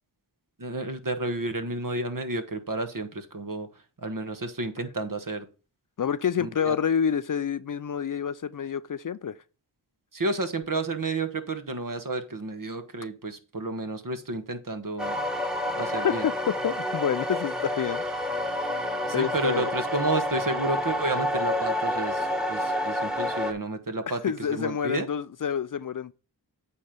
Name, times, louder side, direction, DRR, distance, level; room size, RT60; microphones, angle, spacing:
voice 1, 0.6-3.7 4.0-5.5 6.4-6.7 10.1-15.2 15.8-16.2 19.1-24.2 24.5-25.1, right 2 dB, 50° right, 1.4 m, -31 dB
voice 2, 6.0-9.4 15.9-18.0 19.1-19.7 24.1-26.1, left 8 dB, 50° left, 0.5 m, -28 dB
sound 1, 15.0-23.5, left 1 dB, ahead, 1.4 m, -29 dB
8.4 x 4.5 x 5.3 m
cardioid pair, 45°, 43 cm